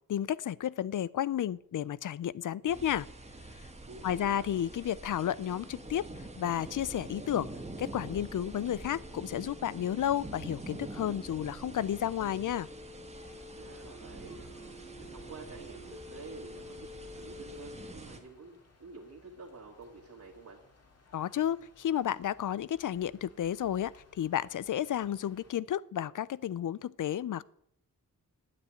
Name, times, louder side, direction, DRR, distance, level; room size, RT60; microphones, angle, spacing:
voice 1, 0.1-3.1 4.0-6.1 6.4-7.5 7.8-12.7 21.1-27.4, left 10 dB, 65° left, 21 dB, 0.5 m, -32 dB
sound 1, 2.7-18.2, right 2 dB, 20° right, 1.8 m, -46 dB
voice 2, 3.8-4.4 13.5-14.4 15.0-20.6, right 4 dB, 55° right, -3 dB, 2.3 m, -49 dB
sound 2, 4.7-17.9, left 2 dB, ahead, 1.1 m, -52 dB
sound 3, 13.1-25.5, left 3 dB, 45° left, 2.4 m, -62 dB
9.7 x 8.6 x 9.0 m, 0.73 s
wide cardioid pair, 150°, 34 cm